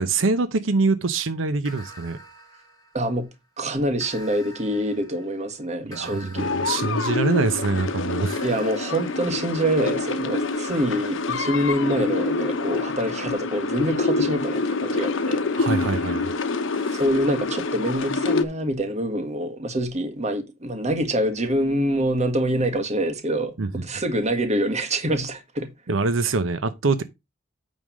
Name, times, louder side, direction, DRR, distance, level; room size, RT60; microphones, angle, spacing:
voice 1, 0.0-2.2 5.8-8.4 15.5-16.4 16.8-17.0 23.6-23.7 25.9-27.0, right 3 dB, 85° right, 0.8 m, -24 dB
sound 1, 1.6-3.4 4.0-7.7 8.3-12.0, equal, 20° left, 3.0 m, -47 dB
voice 2, 2.9-3.3 3.6-6.5 8.4-15.4 16.9-25.7, right 1 dB, 35° right, 1.5 m, -25 dB
sound 2, 6.4-18.4, left 3 dB, 90° left, 1.0 m, -26 dB
9.1 x 3.5 x 6.2 m
head